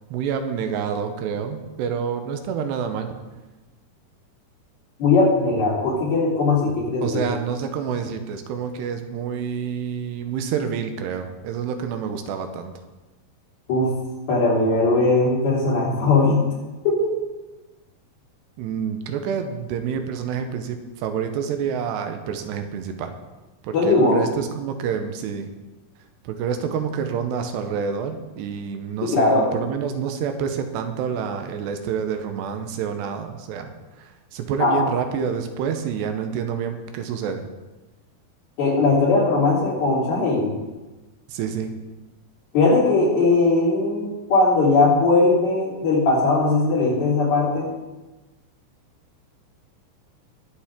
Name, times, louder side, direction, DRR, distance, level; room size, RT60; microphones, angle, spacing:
voice 1, 0.1-3.1 7.0-12.7 18.6-23.2 23.6-25.5 26.2-33.7 34.0-37.5 41.3-41.7, right 7 dB, 85° right, 6 dB, 3.0 m, -28 dB
voice 2, 5.0-7.2 13.7-13.9 14.3-16.4 16.9-17.1 23.7-24.2 29.0-29.5 34.6-34.8 38.6-40.5 42.5-47.7, left 3 dB, 60° left, -5 dB, 5.3 m, -19 dB
21.0 x 7.2 x 3.8 m, 1.1 s
omnidirectional pair, 4.9 m